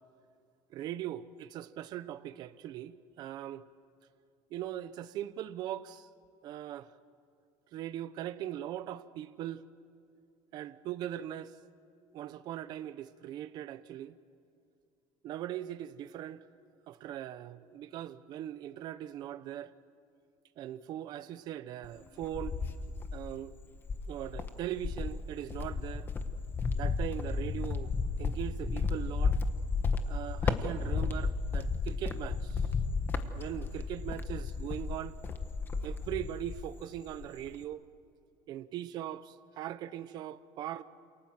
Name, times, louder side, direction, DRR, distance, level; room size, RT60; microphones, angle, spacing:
voice 1, 0.7-3.6 4.5-6.1 6.4-6.9 7.7-9.6 10.5-11.5 12.1-14.1 15.2-16.4 16.9-19.7 20.6-22.6 23.1-23.5 24.1-26.1 26.7-27.9 28.2-29.4 30.1-32.6 33.3-35.1 35.8-37.8 38.5-40.8, right 12 dB, 40° right, 0.8 m, -40 dB
Cricket, 21.8-23.4 23.8-36.8 37.1-37.6, left 4 dB, 20° left, 1.2 m, -33 dB
28.5 x 27.5 x 7.6 m
cardioid pair, 175°, 11 cm